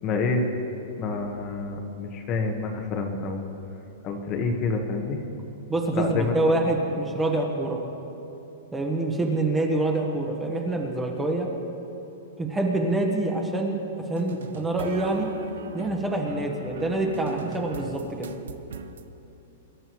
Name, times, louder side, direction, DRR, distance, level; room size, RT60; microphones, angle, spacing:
voice 1, 0.0-0.4 1.0-3.5 4.0-5.2 5.9-6.3, left 4 dB, 30° left, 3 dB, 1.2 m, -28 dB
voice 2, 5.7-7.8 8.7-11.5 12.4-15.3 15.7-18.3, right 2 dB, 10° right, 1 dB, 1.2 m, -26 dB
sound 1, 14.2-19.0, right 6 dB, 80° right, 0.8 m, -39 dB
25.5 x 12.0 x 3.1 m, 2.9 s
hypercardioid pair, 160°, 0 cm